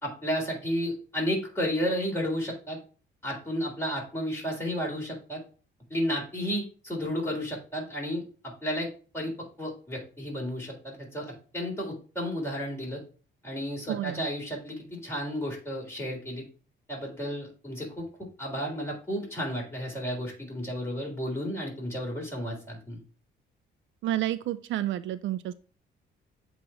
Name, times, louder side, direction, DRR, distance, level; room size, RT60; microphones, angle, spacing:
voice 1, 0.0-2.8 3.2-5.4 5.9-8.2 8.6-8.9 9.1-9.3 9.6-13.0 13.4-16.4 16.9-18.1 18.4-23.0, equal, 10° left, -2 dB, 3.6 m, -32 dB
voice 2, 13.9-14.3 24.0-25.5, right 13 dB, 70° right, 14 dB, 0.4 m, -30 dB
7.6 x 3.1 x 4.7 m, 0.38 s
cardioid pair, 90°, 20 cm